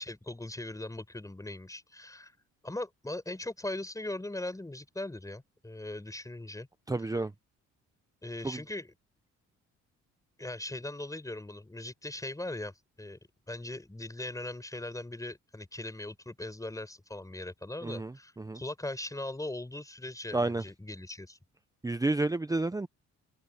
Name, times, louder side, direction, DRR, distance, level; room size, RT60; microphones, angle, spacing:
voice 1, 0.0-2.3 2.6-6.7 8.2-8.9 10.4-13.2 13.5-21.4, left 2 dB, 10° left, 5.5 m, -39 dB
voice 2, 6.9-7.3 8.4-8.6 17.8-18.6 20.3-20.6 21.8-22.9, right 2 dB, 10° right, 0.8 m, -30 dB
cardioid pair, 90°, 30 cm